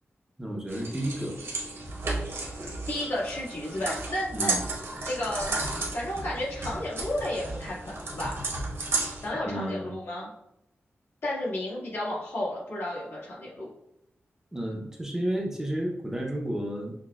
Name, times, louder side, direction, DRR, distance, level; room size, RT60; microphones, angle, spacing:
voice 1, 0.4-1.4 4.3-4.6 9.3-9.9 14.5-16.9, right 1 dB, 10° right, -1 dB, 0.5 m, -32 dB
sound 1, 0.7-9.3, right 2 dB, 65° right, 0.9 m, -33 dB
voice 2, 2.6-4.5 5.0-5.6 5.9-8.4 9.2-10.3 11.2-13.7, left 1 dB, 70° left, -6 dB, 1.5 m, -32 dB
6.0 x 2.1 x 2.2 m, 0.80 s
wide cardioid pair, 140°, 5 cm